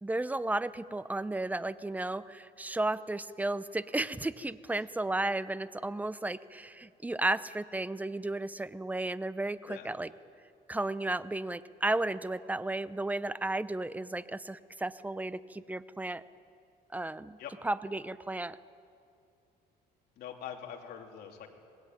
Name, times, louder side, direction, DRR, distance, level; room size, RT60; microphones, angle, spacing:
voice 1, 0.0-10.1 10.7-16.2 16.9-17.4 17.6-18.6, right 2 dB, 10° right, 15 dB, 0.7 m, -33 dB
voice 2, 20.2-21.5, left 9 dB, 70° left, 2 dB, 3.1 m, -43 dB
26.0 x 20.5 x 9.2 m, 2.5 s
cardioid pair, 110°, 17 cm